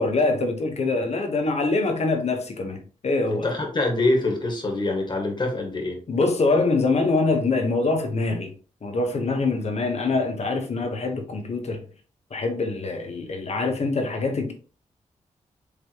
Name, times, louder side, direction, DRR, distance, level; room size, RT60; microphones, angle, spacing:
voice 1, 0.0-3.5 6.1-8.5 8.8-11.8 12.3-14.5, left 3 dB, 55° left, 1.1 m, -24 dB
voice 2, 3.3-6.0, left 2 dB, 35° left, 1.8 m, -25 dB
4.9 x 3.3 x 3.0 m
cardioid pair, 70°, 13 cm